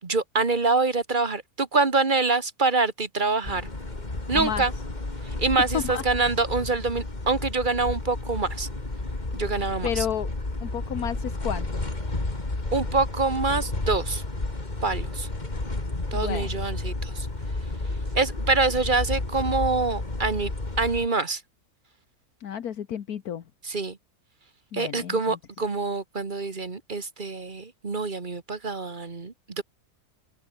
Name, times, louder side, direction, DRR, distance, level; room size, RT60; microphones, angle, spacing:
voice 1, 0.0-3.7 4.3-4.7 5.2-8.7 9.3-10.1 12.7-14.2 14.8-15.3 16.1-17.3 18.1-21.4 23.6-24.0 24.7-29.6, right 3 dB, 30° right, 1.6 m, -25 dB
sound 1, 3.4-21.1, left 2 dB, 25° left, 2.9 m, -31 dB
voice 2, 4.3-4.6 5.7-5.8 9.8-10.3 10.6-11.8 16.1-16.5 22.4-23.4 24.7-25.4, left 9 dB, 70° left, 1.6 m, -31 dB
open air
omnidirectional pair, 1.6 m